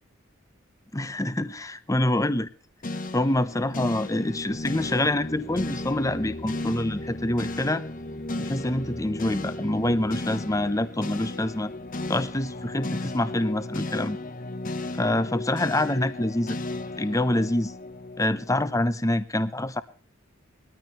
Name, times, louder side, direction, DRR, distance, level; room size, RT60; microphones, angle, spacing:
voice 1, 0.9-2.5 3.1-7.8 8.4-11.7 12.1-14.2 14.9-16.6 17.0-17.7 18.2-19.8, left 1 dB, 15° left, 14 dB, 0.7 m, -26 dB
sound 1, 2.8-19.1, left 2 dB, 40° left, 1.0 m, -35 dB
21.0 x 14.0 x 3.1 m, 0.39 s
head